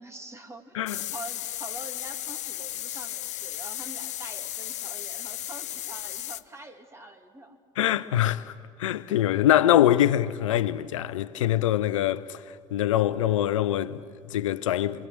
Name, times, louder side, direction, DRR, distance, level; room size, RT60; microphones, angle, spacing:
voice 1, 0.0-0.8 1.1-7.6, right 2 dB, 15° right, 2.7 m, -45 dB
sound 1, 0.9-6.4, left 13 dB, 45° left, 0.7 m, -35 dB
voice 2, 7.8-8.5 8.8-12.4 12.7-15.1, left 12 dB, 75° left, 0.7 m, -24 dB
28.0 x 23.5 x 8.0 m
figure-of-eight pair, 65°, 17 cm